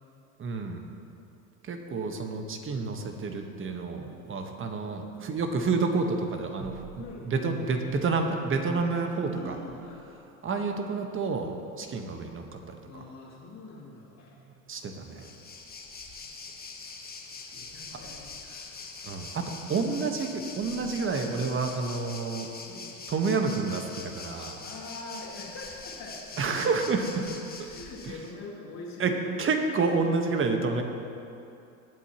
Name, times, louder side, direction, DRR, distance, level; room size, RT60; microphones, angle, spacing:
voice 1, 0.4-0.8 1.6-9.6 10.4-13.1 14.7-15.3 19.0-22.5 23.1-24.6 26.4-27.3 27.6-27.7 28.0-28.2 29.0-30.8, right 4 dB, 30° right, 5 dB, 1.3 m, -29 dB
voice 2, 7.0-7.7 9.3-10.0 12.9-14.4 17.5-19.4 20.7-20.9 22.7-22.9 24.6-26.2 27.7-29.1, left 2 dB, 40° left, -4 dB, 2.5 m, -44 dB
Waves surf, 15.0-28.3, left 4 dB, 20° left, 1.4 m, -43 dB
18.0 x 8.3 x 3.0 m, 2.7 s
hypercardioid pair, 80°, 41 cm